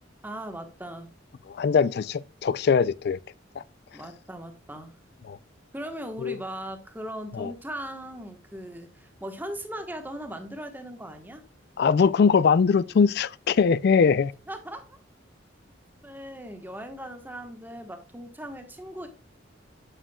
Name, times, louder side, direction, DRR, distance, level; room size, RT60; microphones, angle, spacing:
voice 1, 0.2-1.1 3.9-4.9 5.7-11.4 14.5-15.0 16.0-19.1, right 1 dB, 10° right, 1.2 m, -38 dB
voice 2, 1.5-3.2 3.6-3.7 5.3-5.4 6.2-6.3 7.3-7.5 11.8-14.3, left 5 dB, 55° left, 0.3 m, -21 dB
8.8 x 6.7 x 2.3 m
head